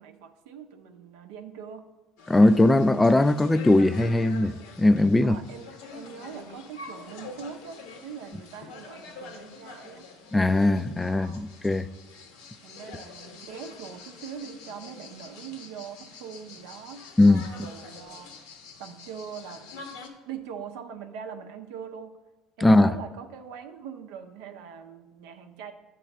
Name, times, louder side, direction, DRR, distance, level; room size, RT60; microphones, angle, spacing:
voice 1, 0.0-1.9 5.2-10.1 11.1-11.4 12.6-18.4 18.8-19.6 20.3-22.2 22.6-25.7, right 7 dB, 75° right, 0.6 m, -42 dB
sound 1, 2.2-20.1, left 4 dB, 80° left, 1.0 m, -46 dB
voice 2, 2.3-4.5 4.8-5.4 10.3-11.8 17.2-17.4 22.6-22.9, left 2 dB, 15° left, 0.3 m, -19 dB
8.0 x 3.1 x 5.9 m
supercardioid pair, 85°, 0 cm